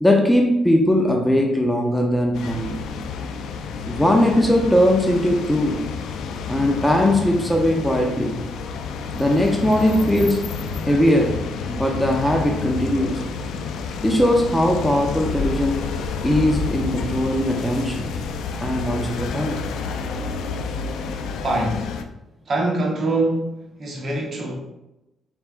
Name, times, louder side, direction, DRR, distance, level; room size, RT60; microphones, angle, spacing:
voice 1, 0.0-2.8 3.9-5.8 6.5-8.5 9.1-10.5 10.9-13.2 14.0-15.9 16.2-18.1 18.6-19.6, left 1 dB, 5° left, 2 dB, 0.6 m, -20 dB
sound 1, 2.3-22.0, left 5 dB, 80° left, 0.3 m, -29 dB
voice 2, 21.4-22.0 22.5-24.5, right 2 dB, 50° right, 0 dB, 1.0 m, -24 dB
4.2 x 3.4 x 2.5 m, 0.93 s
cardioid pair, 90°, 0 cm